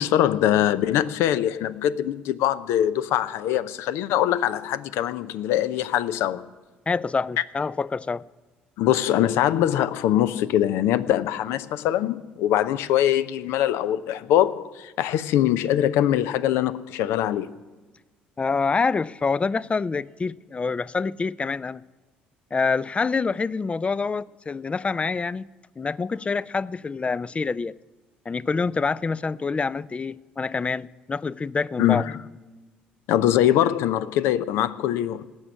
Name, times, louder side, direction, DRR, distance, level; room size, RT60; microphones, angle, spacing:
voice 1, 0.0-6.4 8.8-17.5 31.8-32.2 33.1-35.3, left 12 dB, 70° left, 0.6 m, -23 dB
voice 2, 6.9-8.3 18.4-21.8 22.5-25.5 25.8-27.7 28.3-32.1, left 4 dB, 25° left, 0.4 m, -26 dB
17.0 x 6.2 x 9.9 m
hypercardioid pair, 60°, 5 cm